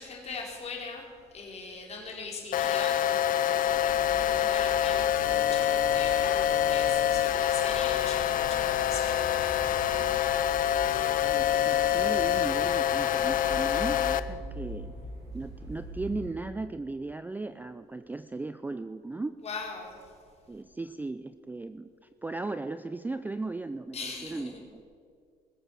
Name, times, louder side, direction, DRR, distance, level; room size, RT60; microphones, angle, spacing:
voice 1, 0.0-9.6 19.4-20.0 23.9-24.6, left 4 dB, 40° left, 0 dB, 3.6 m, -41 dB
sound 1, 2.5-14.2, left 11 dB, 55° left, 0.6 m, -26 dB
sound 2, 3.6-16.3, right 1 dB, 75° right, 4.7 m, -43 dB
voice 2, 11.3-14.9 15.3-19.4 20.5-21.9 22.2-24.8, right 3 dB, 10° right, 11 dB, 0.4 m, -37 dB
20.0 x 7.8 x 6.8 m, 2.2 s
cardioid pair, 110°, 17 cm